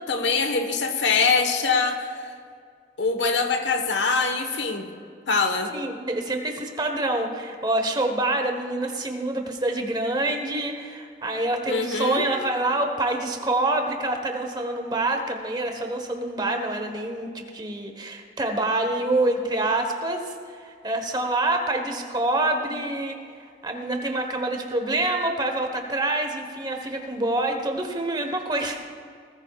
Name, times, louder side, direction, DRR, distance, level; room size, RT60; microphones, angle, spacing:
voice 1, 0.1-2.2 3.0-4.9 5.3-5.7 11.7-12.3, left 4 dB, 80° left, 5 dB, 1.3 m, -23 dB
voice 2, 5.7-23.2 23.6-28.8, right 2 dB, 25° right, 4 dB, 1.2 m, -26 dB
20.5 x 14.5 x 2.4 m, 2.2 s
head